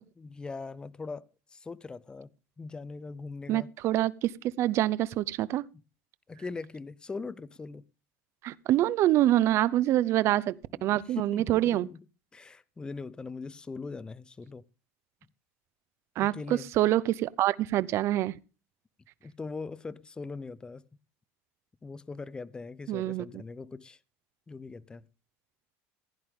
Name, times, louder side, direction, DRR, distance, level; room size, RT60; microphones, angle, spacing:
voice 1, 0.2-2.3 2.6-3.7 6.3-7.8 10.7-12.0 12.3-14.6 16.2-16.7 19.2-20.8 21.8-24.0 24.5-25.1, left 4 dB, 15° left, 0.6 m, -41 dB
voice 2, 3.5-5.6 8.4-10.6 10.8-11.9 16.2-18.4 22.9-23.4, right 14 dB, 50° right, 0.6 m, -26 dB
15.5 x 10.5 x 3.7 m
supercardioid pair, 135°, 6 cm